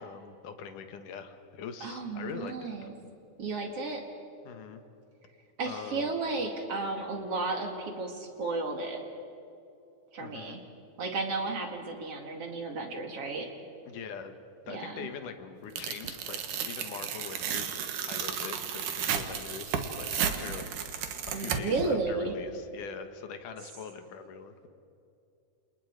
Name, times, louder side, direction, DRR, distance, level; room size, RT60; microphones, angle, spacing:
voice 1, 0.0-2.7 4.4-4.8 5.6-6.1 10.2-10.6 13.9-14.3 14.7-17.7 18.0-20.7 21.0-24.7, left 6 dB, 80° left, 7 dB, 2.9 m, -43 dB
voice 2, 1.8-2.9 3.4-4.0 5.6-9.0 10.1-10.6 11.0-13.5 14.7-15.1 21.3-22.3, right 3 dB, 50° right, 3 dB, 3.1 m, -33 dB
Tearing, 15.8-21.9, right 8 dB, 75° right, 3.0 m, -33 dB
29.5 x 28.0 x 4.8 m, 2.7 s
omnidirectional pair, 3.7 m